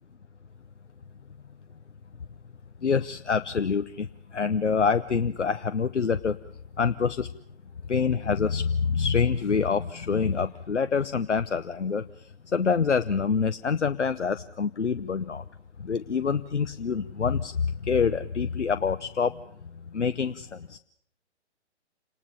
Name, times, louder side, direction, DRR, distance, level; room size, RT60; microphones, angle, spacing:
voice 1, 2.8-4.1 4.3-6.4 6.8-7.3 7.9-12.0 12.5-15.4 15.8-19.4 19.9-20.8, left 5 dB, 85° left, 11 dB, 0.9 m, -26 dB
28.0 x 19.5 x 7.1 m, 0.66 s
figure-of-eight pair, 135°, 35 cm